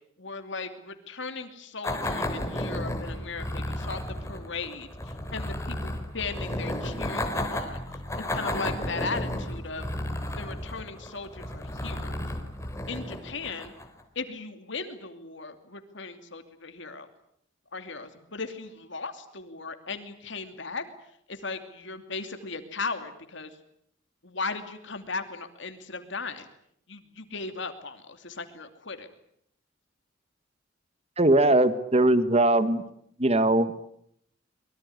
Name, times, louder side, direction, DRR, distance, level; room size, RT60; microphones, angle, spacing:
voice 1, 0.2-7.8 8.1-9.8 10.2-12.1 12.9-13.7 14.1-17.1 17.7-20.8 21.3-23.6 24.2-26.5 26.9-29.1, left 4 dB, 65° left, 7 dB, 2.7 m, -37 dB
sound 1, 1.8-14.0, left 1 dB, 15° left, 3.3 m, -33 dB
voice 2, 31.2-32.8 33.2-33.7, right 1 dB, 30° right, 12 dB, 1.6 m, -20 dB
24.0 x 23.0 x 9.6 m, 0.71 s
head